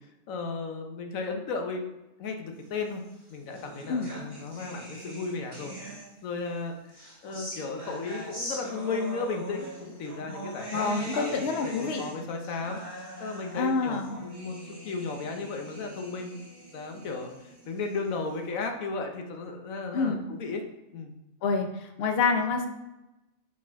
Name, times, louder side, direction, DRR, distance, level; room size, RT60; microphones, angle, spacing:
voice 1, 0.3-1.9 2.2-3.0 3.3-5.7 6.2-6.9 7.2-12.8 13.2-14.6 14.8-16.5 16.7-20.6 20.9-21.1, left 4 dB, 90° left, 4 dB, 1.2 m, -35 dB
sound 1, 3.0-6.4 6.9-18.4, right 1 dB, 15° right, 1.8 m, -42 dB
voice 2, 10.7-12.0 13.5-14.2 19.9-20.2 21.4-22.7, left 4 dB, 55° left, 5 dB, 0.8 m, -27 dB
4.9 x 4.2 x 4.5 m, 0.97 s
omnidirectional pair, 1.4 m